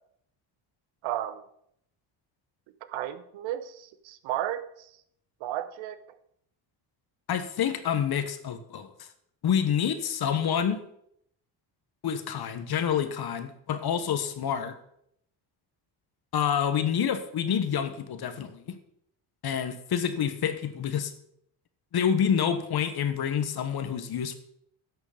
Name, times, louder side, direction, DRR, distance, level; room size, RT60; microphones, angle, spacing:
voice 1, 1.0-1.4 2.9-4.9 5.4-6.0, right 12 dB, 75° right, 12 dB, 0.9 m, -33 dB
voice 2, 7.3-8.9 9.4-10.8 12.0-14.7 16.3-18.8 19.4-21.1 21.9-24.3, left 8 dB, 50° left, 10 dB, 1.3 m, -28 dB
11.0 x 6.3 x 5.0 m, 0.72 s
supercardioid pair, 70°, 47 cm